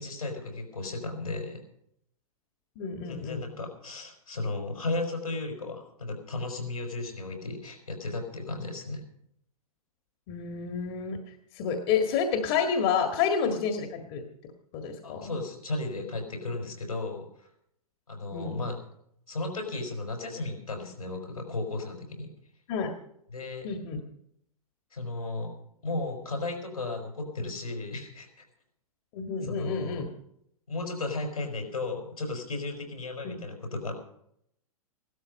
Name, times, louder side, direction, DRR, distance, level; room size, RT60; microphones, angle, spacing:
voice 1, 0.0-1.6 3.1-9.0 15.0-17.5 18.1-18.8 19.3-22.3 23.3-23.7 24.9-25.6 25.8-28.5 29.4-30.0 30.7-33.9, left 2 dB, 85° left, 3 dB, 5.2 m, -35 dB
voice 2, 2.8-3.4 10.3-11.2 11.5-14.2 14.7-15.3 18.3-18.6 22.7-22.9 23.6-24.0 29.1-30.1 33.2-33.4, left 6 dB, 40° left, 5 dB, 1.8 m, -29 dB
16.5 x 12.5 x 5.4 m, 0.72 s
figure-of-eight pair, 105°, 19 cm